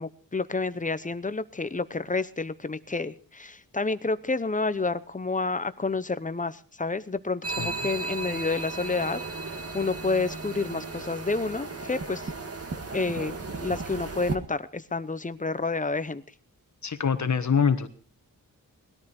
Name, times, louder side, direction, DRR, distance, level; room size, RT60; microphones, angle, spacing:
voice 1, 0.0-12.3 12.9-13.4 13.6-16.2, left 3 dB, 20° left, 14 dB, 0.8 m, -29 dB
sound 1, 7.4-14.4, right 3 dB, 40° right, 1.9 m, -35 dB
voice 2, 16.8-17.9, left 6 dB, 50° left, 9 dB, 1.4 m, -24 dB
20.0 x 13.0 x 4.3 m, 0.39 s
wide cardioid pair, 130°, 35 cm